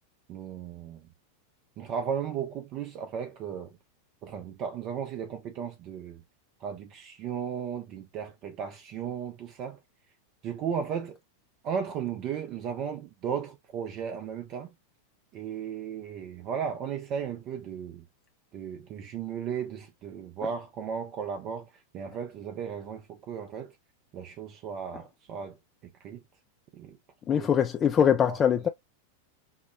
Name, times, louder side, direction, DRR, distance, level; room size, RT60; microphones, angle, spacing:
voice 1, 0.3-1.0 1.8-3.8 4.2-6.2 6.6-9.8 10.4-11.2 11.6-14.7 15.3-18.0 18.5-23.8 24.1-25.6 26.0-26.2 26.7-27.0 27.3-27.5 28.3-28.4, right 7 dB, 35° right, 0.5 m, -35 dB
voice 2, 27.3-28.7, left 8 dB, 25° left, 0.3 m, -23 dB
5.5 x 2.1 x 2.3 m
figure-of-eight pair, 90°, 0 cm